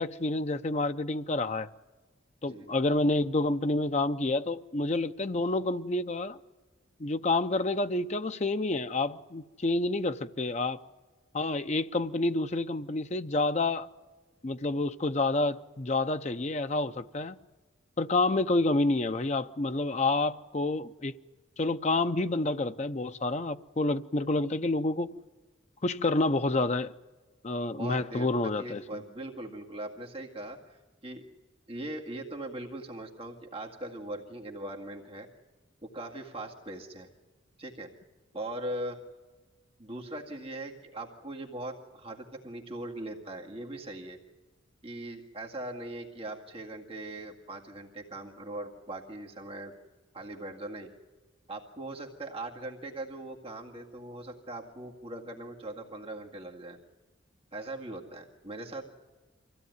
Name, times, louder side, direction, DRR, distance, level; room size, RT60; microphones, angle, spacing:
voice 1, 0.0-1.7 2.4-6.4 7.0-10.8 11.3-13.9 14.4-17.4 18.0-21.2 21.6-25.1 25.8-26.9 27.4-29.0, left 2 dB, 35° left, 0.6 m, -28 dB
voice 2, 27.8-28.3 28.6-30.8 31.0-31.2 31.7-35.3 35.8-37.1 37.6-37.9 38.3-39.0 39.8-44.2 44.8-49.7 50.1-50.9 51.5-56.8 57.5-58.9, right 1 dB, 30° right, 2.0 m, -40 dB
24.0 x 16.0 x 9.5 m
head